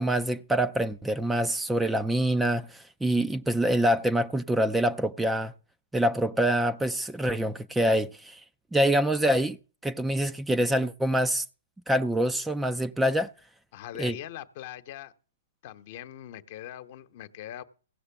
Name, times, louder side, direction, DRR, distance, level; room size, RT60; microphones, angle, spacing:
voice 1, 0.0-5.5 5.9-8.4 8.7-9.6 9.8-11.4 11.9-13.3 14.0-14.2, right 1 dB, 5° right, 0.6 m, -25 dB
voice 2, 13.7-15.1 15.6-17.6, left 12 dB, 50° left, 1.1 m, -41 dB
16.0 x 6.7 x 5.9 m
figure-of-eight pair, 115°, 0 cm